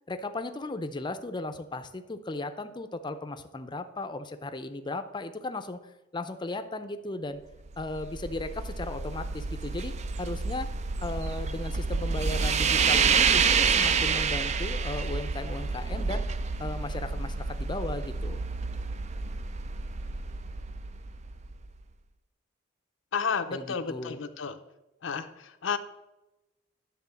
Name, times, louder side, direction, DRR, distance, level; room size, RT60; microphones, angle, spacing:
voice 1, 0.1-5.8 6.1-7.4 7.8-10.7 11.0-16.2 16.6-18.4 23.5-24.2, left 2 dB, 25° left, 10 dB, 0.5 m, -36 dB
sound 1, 7.6-21.7, right 5 dB, 35° right, 0.4 m, -28 dB
voice 2, 23.1-24.6 25.0-25.8, left 6 dB, 80° left, 10 dB, 0.6 m, -31 dB
9.8 x 3.7 x 7.0 m, 0.98 s
head